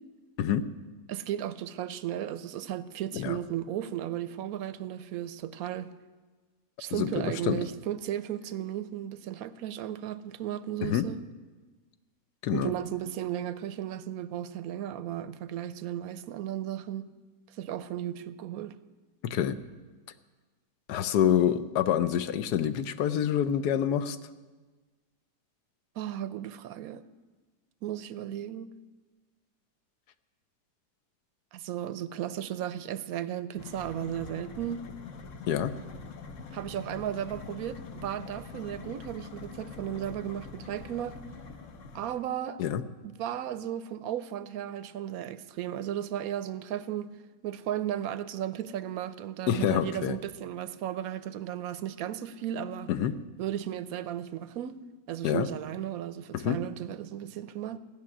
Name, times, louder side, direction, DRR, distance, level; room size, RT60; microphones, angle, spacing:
voice 1, 1.1-5.9 6.8-11.2 12.5-17.1 17.6-18.7 26.0-27.0 27.8-28.7 31.5-34.9 36.5-41.2 41.9-42.6 43.0-47.1 47.4-52.9 53.4-54.7 55.1-57.8, right 11 dB, 70° right, 1.0 m, -35 dB
voice 2, 6.9-7.6 10.8-11.1 12.4-12.7 19.2-19.6 20.9-24.2 35.5-35.7 42.6-42.8 49.5-50.2 52.9-53.1 55.2-55.5 56.3-56.6, left 9 dB, 75° left, 1.2 m, -27 dB
sound 1, 33.6-42.2, left 4 dB, 55° left, 1.1 m, -44 dB
15.0 x 6.5 x 9.8 m
omnidirectional pair, 1.8 m